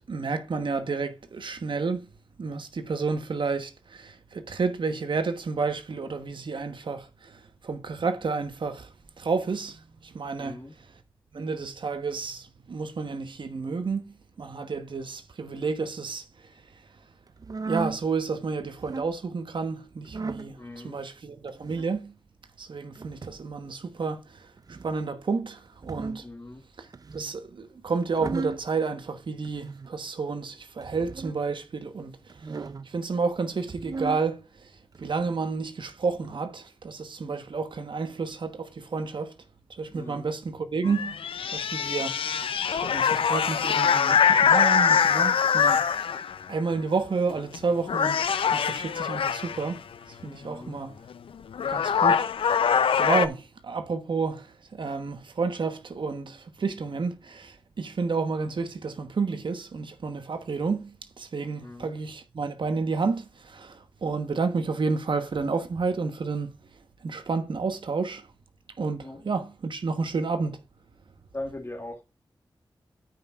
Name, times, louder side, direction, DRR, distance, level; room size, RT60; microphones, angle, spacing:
voice 1, 0.1-2.1 2.4-11.0 11.3-16.7 17.6-22.2 22.6-26.2 26.8-32.6 32.8-39.3 39.7-41.2 41.5-42.2 42.7-49.8 50.1-51.0 51.7-66.5 67.0-68.3 68.8-70.6, right 4 dB, 65° right, 1.1 m, -31 dB
voice 2, 10.4-10.7 20.6-21.0 26.2-26.6 39.9-40.3 50.4-50.8 61.6-61.9 69.0-69.3 71.3-72.0, left 2 dB, 30° left, 1.8 m, -40 dB
sound 1, 17.4-18.0 18.7-19.1 20.0-20.5 21.5-21.9 23.0-23.5 24.6-25.0 25.7-26.3 26.9-27.4 28.0-28.7 29.4-29.9 30.8-31.4 32.3-32.9 33.6-34.2 34.9-35.4 36.2-36.4, right 4 dB, 45° right, 0.5 m, -36 dB
sound 2, 40.9-46.4 47.3-47.6 47.9-49.7 51.1-51.2 51.5-53.3, left 7 dB, 85° left, 0.5 m, -23 dB
14.0 x 5.6 x 2.4 m
cardioid pair, 55°, 9 cm